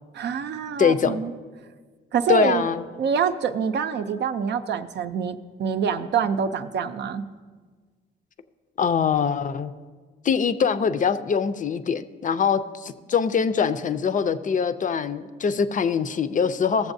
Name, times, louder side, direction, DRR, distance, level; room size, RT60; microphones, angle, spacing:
voice 1, 0.1-1.3 2.1-2.6 3.0-7.2, right 7 dB, 60° right, 9 dB, 0.5 m, -26 dB
voice 2, 0.8-1.2 2.3-2.8 8.8-9.7 10.2-16.9, left 6 dB, 40° left, 11 dB, 0.5 m, -23 dB
15.5 x 7.1 x 2.6 m, 1.5 s
cardioid pair, 90°, 20 cm